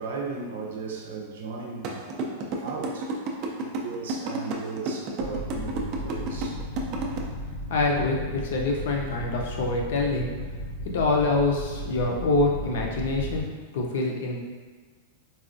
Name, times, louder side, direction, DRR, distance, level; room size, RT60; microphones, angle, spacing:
voice 1, 0.0-3.1 3.6-6.6, right 4 dB, 75° right, 0 dB, 0.6 m, -36 dB
sound 1, 1.8-7.2, right 3 dB, 30° right, 0.3 m, -30 dB
sound 2, 5.2-13.4, equal, 85° left, 1.0 m, -35 dB
voice 2, 7.7-10.3 10.8-13.5 13.7-14.4, left 2 dB, 60° left, 0 dB, 0.6 m, -25 dB
4.1 x 2.3 x 2.5 m, 1.5 s
supercardioid pair, 175°, 0 cm